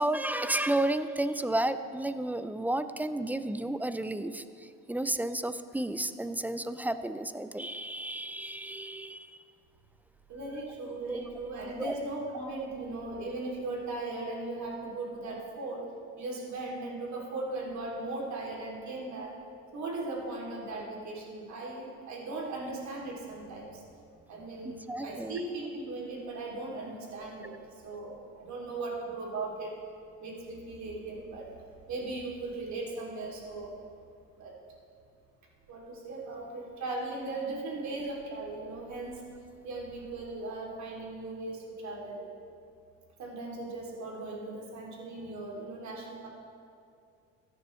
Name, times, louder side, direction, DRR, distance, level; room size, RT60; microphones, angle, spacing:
voice 1, 0.0-9.3 11.1-11.2 11.8-11.9 24.9-25.4, right 1 dB, 5° right, 11 dB, 0.4 m, -32 dB
voice 2, 10.3-15.9 16.2-19.4 19.7-23.8 24.3-27.5 27.8-29.8 30.2-31.5 31.9-33.8 34.4-34.5 35.7-39.2 39.6-42.3 43.2-46.3, right 2 dB, 60° right, -2 dB, 3.0 m, -38 dB
14.0 x 10.0 x 3.2 m, 2.4 s
supercardioid pair, 85°, 32 cm